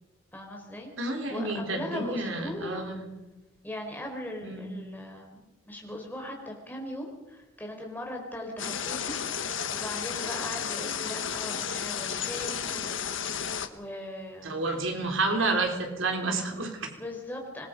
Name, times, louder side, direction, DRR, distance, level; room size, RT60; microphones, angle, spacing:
voice 1, 0.3-0.9 1.3-2.9 3.6-13.4 13.7-14.6 17.0-17.7, left 1 dB, 10° left, 1 dB, 4.3 m, -39 dB
voice 2, 1.0-3.0 4.4-4.8 14.4-16.9, right 3 dB, 75° right, 3 dB, 3.8 m, -30 dB
sound 1, 8.6-13.7, left 7 dB, 70° left, 1.5 m, -33 dB
26.0 x 21.0 x 5.2 m, 1.0 s
head